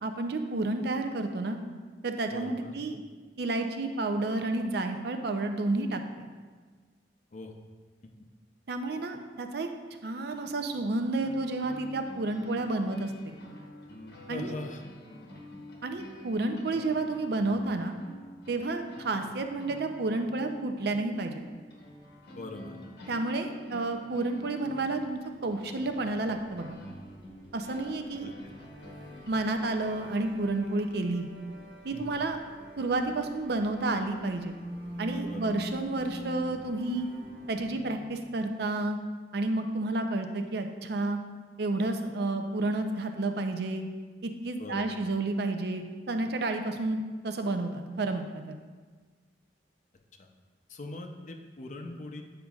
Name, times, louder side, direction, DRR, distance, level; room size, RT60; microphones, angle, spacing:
voice 1, 0.0-1.6 2.0-3.0 3.4-6.3 8.7-9.7 10.0-13.3 14.3-14.5 15.8-17.9 18.5-21.4 23.1-26.8 27.5-28.3 29.3-31.3 31.8-32.4 32.8-34.5 35.0-37.1 37.5-39.0 39.3-41.2 41.6-43.8 44.2-48.6, right 2 dB, 60° right, 6 dB, 0.5 m, -31 dB
voice 2, 2.3-2.7 7.3-7.5 14.3-14.8 22.4-22.8 28.2-28.4 31.9-32.0 35.3-35.5 44.6-45.0 50.2-50.3 50.7-52.2, left 2 dB, 45° left, 4 dB, 0.5 m, -41 dB
sound 1, 10.7-29.3, left 1 dB, 65° left, 0.9 m, -48 dB
sound 2, 25.4-38.4, equal, 5° right, 1.1 m, -46 dB
8.8 x 5.1 x 2.4 m, 1.5 s
head